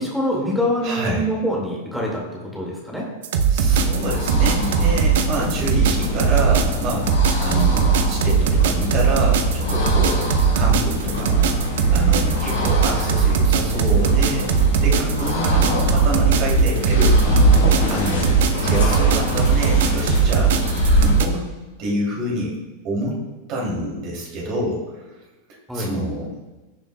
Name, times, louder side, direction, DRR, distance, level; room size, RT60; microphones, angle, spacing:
voice 1, 0.0-2.2 2.5-3.0 5.4-5.7 15.3-15.7 25.7-25.9, equal, ahead, -3 dB, 2.2 m, -25 dB
voice 2, 0.8-1.2 3.5-7.1 7.4-11.6 11.9-14.5 14.8-17.5 17.9-18.3 18.6-20.5 21.0-21.5 21.8-22.6 22.8-23.2 23.5-25.1 25.7-26.3, right 1 dB, 40° right, -3 dB, 3.0 m, -27 dB
sound 1, 3.2-21.2, right 7 dB, 55° right, 0.8 m, -19 dB
sound 2, 3.5-21.3, left 1 dB, 60° left, 3.2 m, -23 dB
16.0 x 7.0 x 2.3 m, 1.1 s
figure-of-eight pair, 90°, 0 cm